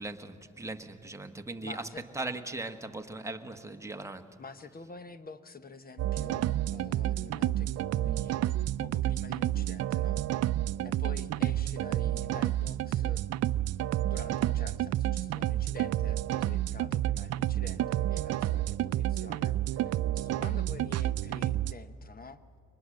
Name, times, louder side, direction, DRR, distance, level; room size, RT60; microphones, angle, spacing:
voice 1, 0.0-1.8 2.1-4.2, right 2 dB, 10° right, 5 dB, 1.3 m, -39 dB
voice 2, 1.6-2.0 4.4-8.4 8.8-10.2 10.8-13.2 14.0-22.4, left 4 dB, 30° left, 12 dB, 1.0 m, -48 dB
sound 1, 6.0-21.7, right 13 dB, 55° right, 0.5 m, -30 dB
23.5 x 20.0 x 6.4 m, 2.6 s
cardioid pair, 90°, 30 cm